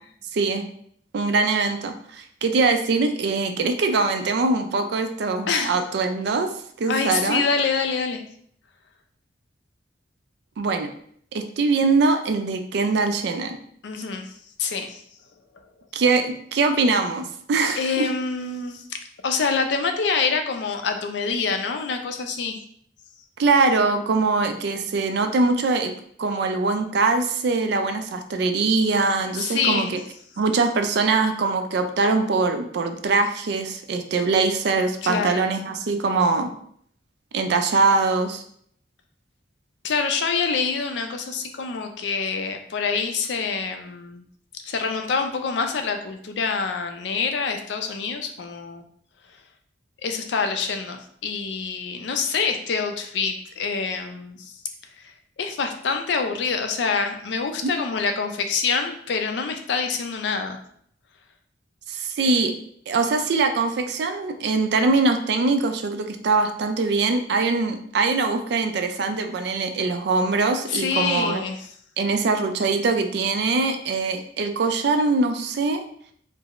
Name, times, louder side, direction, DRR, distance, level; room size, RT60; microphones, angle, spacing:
voice 1, 0.3-0.6 1.1-6.5 6.8-7.4 10.6-10.9 11.3-13.6 15.9-18.1 23.4-25.9 26.2-30.0 30.4-36.5 37.3-38.4 57.6-57.7 61.9-62.5 62.9-71.4 72.0-75.8, right 3 dB, 60° right, 6 dB, 0.4 m, -22 dB
voice 2, 6.9-8.2 13.8-14.3 14.6-15.0 17.8-19.0 19.2-22.6 29.4-29.9 35.0-35.4 39.8-44.2 44.7-48.8 50.0-54.5 55.0-60.6 70.7-71.6, left 5 dB, 70° left, 6 dB, 0.4 m, -26 dB
4.5 x 2.0 x 2.4 m, 0.64 s
head